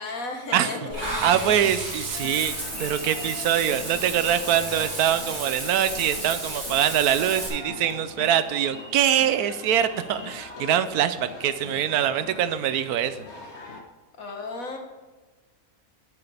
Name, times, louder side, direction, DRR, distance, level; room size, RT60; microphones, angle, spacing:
voice 1, 0.0-1.7 14.2-14.8, left 3 dB, 65° left, 2 dB, 2.0 m, -34 dB
Water / Bathtub (filling or washing), 0.9-7.5, right 1 dB, 50° right, 3.0 m, -33 dB
voice 2, 1.2-13.2, right 10 dB, 80° right, 13 dB, 1.1 m, -24 dB
sound 1, 2.1-13.8, left 3 dB, 50° left, 1.6 m, -41 dB
11.0 x 8.8 x 3.4 m, 1.2 s
omnidirectional pair, 1.6 m